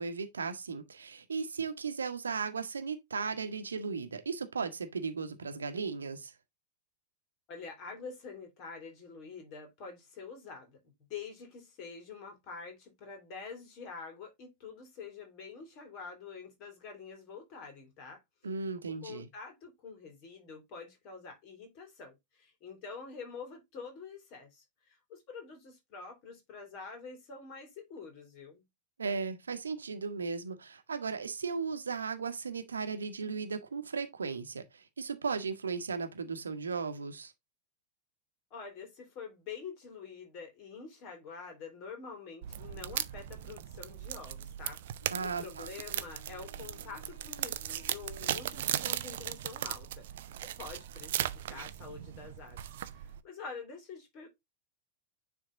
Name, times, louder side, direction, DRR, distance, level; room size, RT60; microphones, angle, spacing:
voice 1, 0.0-6.3 18.4-19.3 29.0-37.3 45.1-45.7, right 5 dB, 70° right, 1.2 m, -36 dB
voice 2, 7.5-10.8 11.1-18.2 18.9-28.6 38.5-54.3, left 5 dB, 40° left, 3.3 m, -47 dB
sound 1, 42.4-53.2, right 12 dB, 55° right, 0.6 m, -38 dB
Wind instrument woodwind instrument, 45.0-49.1, left 5 dB, 65° left, 1.4 m, -60 dB
9.7 x 3.6 x 3.7 m
figure-of-eight pair, 90°, 0 cm